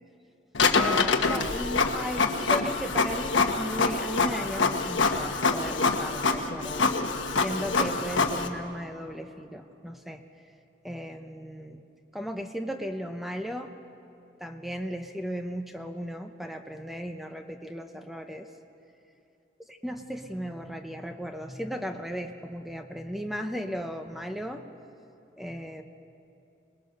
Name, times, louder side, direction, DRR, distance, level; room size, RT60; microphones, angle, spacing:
Printer, 0.5-8.5, left 4 dB, 85° left, 1.3 m, -25 dB
voice 1, 0.7-6.9 7.4-10.2 10.8-11.8 12.1-13.7 14.4-18.5 19.7-24.7 25.4-25.8, equal, ahead, 5 dB, 0.8 m, -36 dB
26.5 x 20.5 x 6.7 m, 2.8 s
head